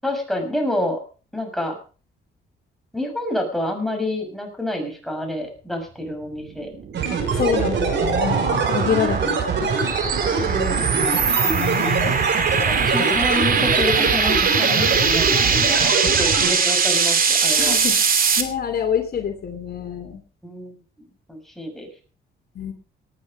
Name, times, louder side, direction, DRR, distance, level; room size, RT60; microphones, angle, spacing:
voice 1, 0.0-1.0 1.3-1.8 2.9-6.7 10.2-11.3 12.5-17.8 20.4-20.8 21.3-21.9, left 1 dB, ahead, 2 dB, 6.5 m, -28 dB
sound 1, 6.4-18.4, right 5 dB, 45° right, 2.8 m, -21 dB
sound 2, 6.9-16.5, right 5 dB, 65° right, 5.9 m, -24 dB
voice 2, 7.4-9.9 11.3-12.2 17.6-18.0 18.4-20.2 22.5-22.7, left 8 dB, 50° left, 5 dB, 2.8 m, -27 dB
19.0 x 10.0 x 5.3 m, 0.38 s
cardioid pair, 90°, 20 cm